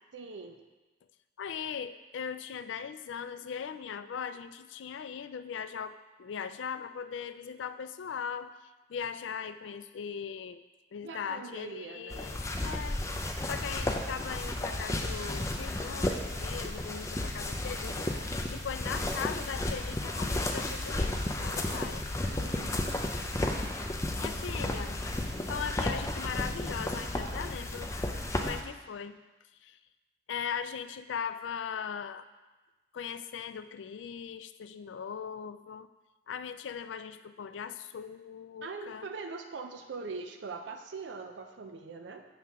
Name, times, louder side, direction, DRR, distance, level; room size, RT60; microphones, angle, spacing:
voice 1, 0.1-0.6 11.0-12.4 22.3-22.8 38.6-42.3, right 4 dB, 80° right, 5 dB, 0.5 m, -42 dB
voice 2, 1.4-8.5 8.9-10.6 10.9-13.0 13.5-22.0 24.2-25.0 25.5-27.9 28.4-29.2 29.6-29.8 30.3-32.3 32.9-35.9 36.3-39.1, left 7 dB, 85° left, 12 dB, 0.4 m, -39 dB
sound 1, 12.1-28.6, left 1 dB, 15° left, 0.5 m, -33 dB
7.6 x 5.7 x 3.6 m, 1.2 s
head